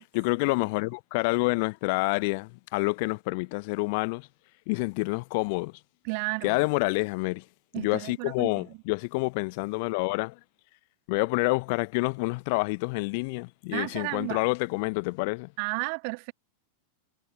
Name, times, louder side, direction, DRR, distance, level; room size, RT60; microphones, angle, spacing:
voice 1, 0.1-4.3 4.7-5.8 6.4-7.4 7.7-10.4 11.1-15.5, left 28 dB, 45° left, 1.0 m, -28 dB
voice 2, 6.0-6.6 7.7-8.7 13.7-14.5 15.6-16.3, right 38 dB, 45° right, 2.6 m, -33 dB
figure-of-eight pair, 90°, 0 cm